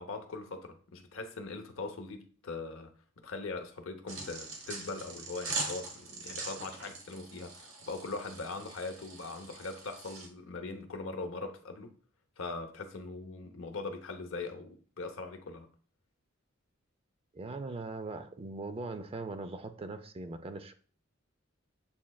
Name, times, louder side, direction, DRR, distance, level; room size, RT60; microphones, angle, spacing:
voice 1, 0.0-2.9 3.2-11.9 12.4-15.7, left 3 dB, 75° left, 0.7 m, -41 dB
sound 1, 4.1-10.3, right 3 dB, 85° right, 1.2 m, -42 dB
voice 2, 17.3-20.7, right 3 dB, 30° right, 0.4 m, -40 dB
7.0 x 3.2 x 2.3 m
head